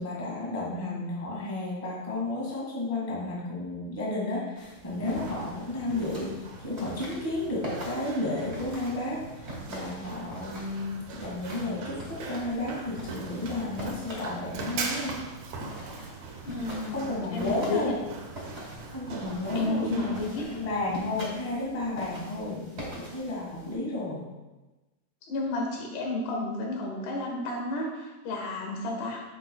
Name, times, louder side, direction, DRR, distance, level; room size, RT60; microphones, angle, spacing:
voice 1, 0.0-15.3 16.9-18.0 18.9-24.3, left 2 dB, 25° left, -5 dB, 0.7 m, -32 dB
sound 1, 4.6-23.8, right 1 dB, 25° right, 1.7 m, -43 dB
Run, 4.9-21.0, right 3 dB, 80° right, 1.5 m, -41 dB
voice 2, 16.5-17.9 19.5-20.4 25.3-29.2, left 2 dB, 85° left, 0 dB, 3.4 m, -31 dB
9.7 x 7.5 x 2.3 m, 1.1 s
omnidirectional pair, 4.5 m